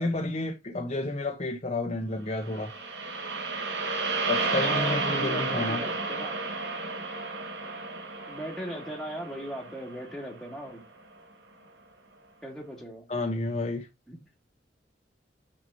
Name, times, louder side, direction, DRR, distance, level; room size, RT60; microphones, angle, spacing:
voice 1, 0.0-2.7 4.3-5.8 13.1-13.9, left 2 dB, 40° left, 1.1 m, -31 dB
sound 1, 2.4-10.7, right 3 dB, 85° right, 1.9 m, -32 dB
voice 2, 4.5-6.4 8.3-10.8 12.4-13.0 14.1-14.2, equal, ahead, 2.3 m, -38 dB
6.9 x 5.9 x 2.9 m
head